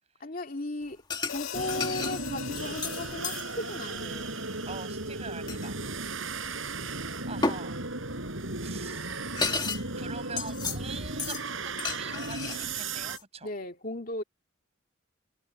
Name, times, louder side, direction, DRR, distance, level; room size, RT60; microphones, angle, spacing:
voice 1, 0.2-4.3 13.4-14.2, left 2 dB, 45° left, 2.6 m, -36 dB
sound 1, 1.1-1.4 1.7-3.4 5.5-5.7 7.4-7.6 8.7-8.8 9.1-9.8 10.1-10.8 11.2-11.4 11.8-13.2, left 4 dB, 20° left, 1.6 m, -32 dB
Hi-hat, 1.3-5.5, left 8 dB, 85° left, 2.1 m, -42 dB
sound 2, 1.5-13.2, right 3 dB, 75° right, 7.6 m, -36 dB
voice 2, 4.7-5.8 7.3-7.8 8.6-9.2 9.9-13.5, right 4 dB, 30° right, 6.8 m, -43 dB
head